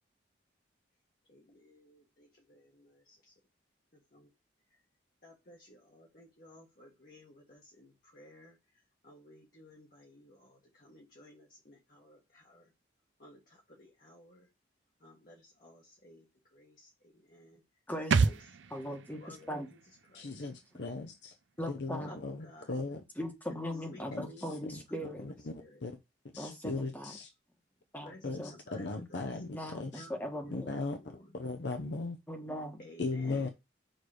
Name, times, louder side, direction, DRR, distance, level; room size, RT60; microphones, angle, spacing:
voice 1, 1.3-3.3 4.1-4.2 5.2-8.6 9.0-12.7 13.2-14.5 15.0-16.2 16.5-17.6 18.2-18.4 19.2-19.6 20.1-20.3 22.0-22.7 23.5-23.6 23.9-24.6 25.6-25.8 28.0-29.2 29.9-31.3 32.8-33.5, left 1 dB, 50° left, 1.5 m, -56 dB
voice 2, 17.9-18.3 18.7-19.7 21.6-22.2 23.2-25.3 26.4-27.1 27.9-28.5 29.5-30.7 32.3-32.9 33.3-33.4, equal, 10° left, 1.3 m, -40 dB
sound 1, 18.1-21.6 21.9-22.0, right 5 dB, 80° right, 0.5 m, -33 dB
voice 3, 20.1-21.3 21.7-23.0 24.1-24.8 25.2-26.0 26.3-27.3 28.2-30.1 30.5-32.2 33.0-33.5, left 3 dB, 70° left, 0.7 m, -38 dB
6.5 x 3.2 x 4.9 m
head